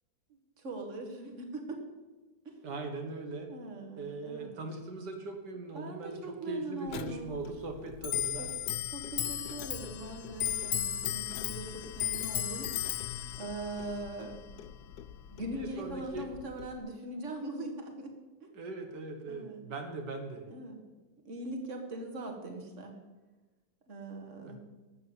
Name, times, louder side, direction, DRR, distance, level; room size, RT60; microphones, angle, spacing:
voice 1, 0.6-1.8 2.5-2.8 3.5-4.6 5.7-7.3 8.4-8.5 8.9-12.7 13.4-14.3 15.3-18.1 18.4-18.5 19.3-19.6 20.5-20.8 21.2-23.0 23.9-24.6, right 2 dB, 45° right, 3 dB, 2.2 m, -41 dB
voice 2, 2.6-3.5 4.0-8.5 15.5-16.3 18.5-20.5 24.4-24.6, right 3 dB, 85° right, 4 dB, 2.0 m, -40 dB
Clock, 6.9-16.8, left 10 dB, 80° left, 1.2 m, -36 dB
12.5 x 7.9 x 8.3 m, 1.2 s
omnidirectional pair, 1.8 m